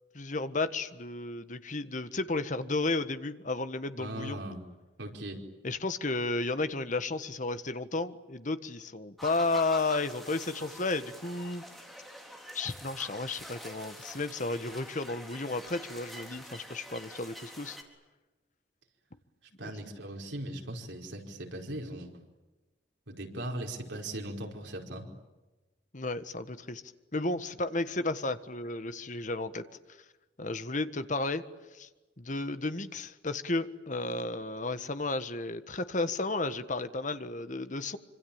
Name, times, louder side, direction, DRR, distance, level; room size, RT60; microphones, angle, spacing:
voice 1, 0.1-4.4 5.6-11.6 12.5-17.8 19.6-19.7 25.9-26.8 27.1-29.6 30.4-31.4 31.7-31.9 32.2-38.0, left 2 dB, 45° left, 11 dB, 1.5 m, -33 dB
voice 2, 4.0-4.6 5.0-5.4 19.6-22.1 23.1-25.1, right 1 dB, 80° right, 1 dB, 5.1 m, -39 dB
sound 1, 9.2-17.8, equal, ahead, 3.9 m, -46 dB
26.0 x 26.0 x 8.9 m, 1.2 s
head